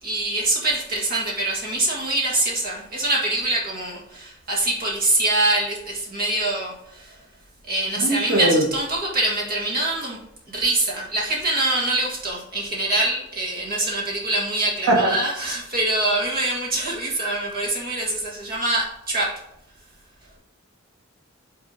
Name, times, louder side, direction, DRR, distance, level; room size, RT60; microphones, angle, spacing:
voice 1, 0.0-7.2 7.7-10.2 10.5-19.4, right 2 dB, 45° right, -3 dB, 1.9 m, -24 dB
voice 2, 8.0-8.6 14.9-15.1, right 1 dB, 85° right, -1 dB, 1.3 m, -19 dB
6.0 x 3.5 x 5.3 m, 0.77 s
head